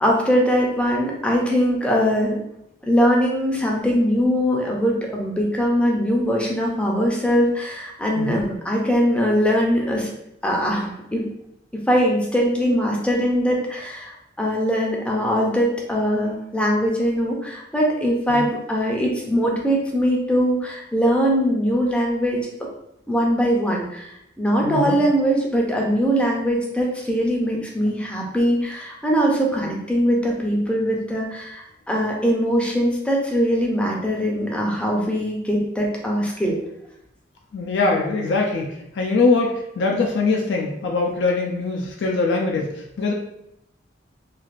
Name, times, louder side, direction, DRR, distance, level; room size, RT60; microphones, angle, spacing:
voice 1, 0.0-2.4 2.8-10.1 10.4-11.3 11.7-22.7 23.1-36.6, equal, 5° left, -1 dB, 0.5 m, -21 dB
voice 2, 24.6-25.0 37.5-43.1, left 3 dB, 70° left, 0 dB, 0.4 m, -22 dB
3.2 x 2.4 x 2.4 m, 0.79 s
head